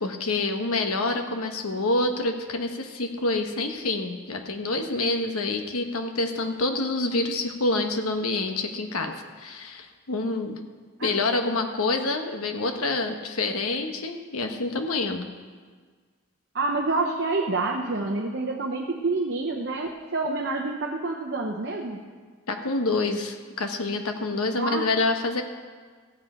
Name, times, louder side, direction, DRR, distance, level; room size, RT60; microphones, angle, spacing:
voice 1, 0.0-10.6 11.0-15.3 22.5-25.4, left 2 dB, 90° left, 5 dB, 1.2 m, -27 dB
voice 2, 16.5-22.0 24.6-24.9, right 3 dB, 50° right, 2 dB, 0.8 m, -28 dB
15.5 x 7.9 x 4.9 m, 1.5 s
head